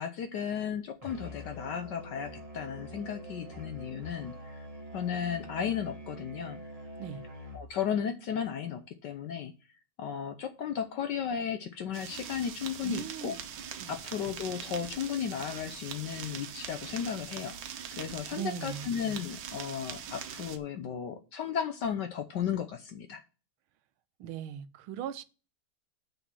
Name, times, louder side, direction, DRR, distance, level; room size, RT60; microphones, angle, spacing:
voice 1, 0.0-4.6 4.9-6.6 7.5-9.5 10.0-13.4 13.9-17.6 17.9-23.2, left 8 dB, 65° left, 1.2 m, -34 dB
Musical instrument, 1.0-7.8, equal, 20° right, 1.5 m, -45 dB
sound 1, 11.9-20.6, right 8 dB, 70° right, 1.6 m, -42 dB
voice 2, 12.8-13.4 13.8-13.9 18.3-18.9 24.2-25.2, right 9 dB, 85° right, 1.6 m, -38 dB
6.7 x 6.2 x 6.1 m
omnidirectional pair, 2.3 m